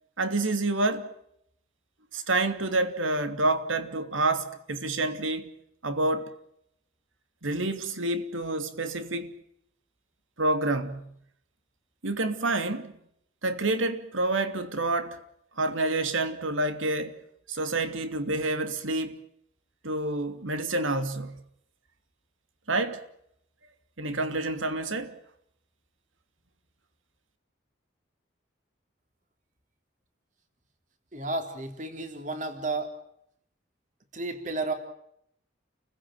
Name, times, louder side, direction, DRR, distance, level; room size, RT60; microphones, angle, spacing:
voice 1, 0.2-1.1 2.1-5.5 5.8-6.3 7.4-9.3 10.4-11.1 12.0-12.9 13.4-15.2 15.6-17.2 17.5-19.2 19.8-21.4 22.7-23.0 24.0-25.2, right 2 dB, 90° right, 2.8 m, -28 dB
voice 2, 31.1-32.9 34.1-34.7, right 2 dB, 40° right, 3.5 m, -32 dB
30.0 x 16.0 x 9.0 m
head